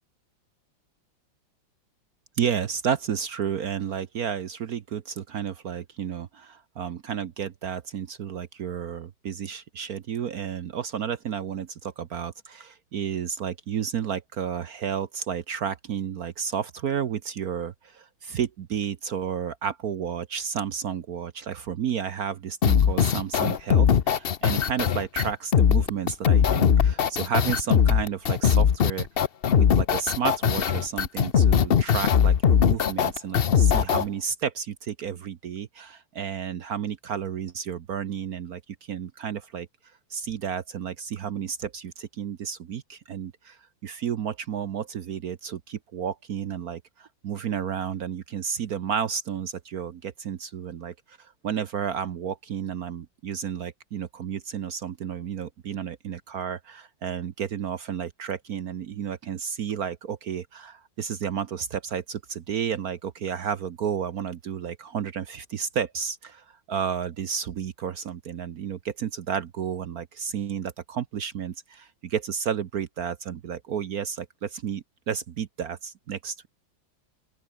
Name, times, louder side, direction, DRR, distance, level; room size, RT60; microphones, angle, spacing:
voice 1, 2.4-29.1 29.5-39.7 40.1-76.5, right 8 dB, 55° right, 1.2 m, -32 dB
sound 1, 22.6-34.0, left 8 dB, 60° left, 0.6 m, -20 dB
open air
omnidirectional pair, 2.1 m